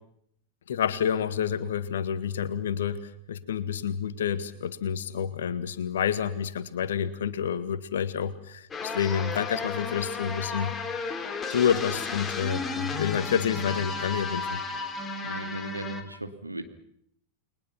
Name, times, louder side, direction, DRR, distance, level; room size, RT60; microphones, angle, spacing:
voice 1, 0.7-10.7 11.5-14.6, left 8 dB, 60° left, 14 dB, 1.8 m, -29 dB
sound 1, 8.7-16.0, left 4 dB, 20° left, 3.2 m, -33 dB
voice 2, 15.2-16.6, right 2 dB, 85° right, 8 dB, 2.3 m, -37 dB
30.0 x 22.5 x 5.9 m, 0.68 s
figure-of-eight pair, 90°, 0 cm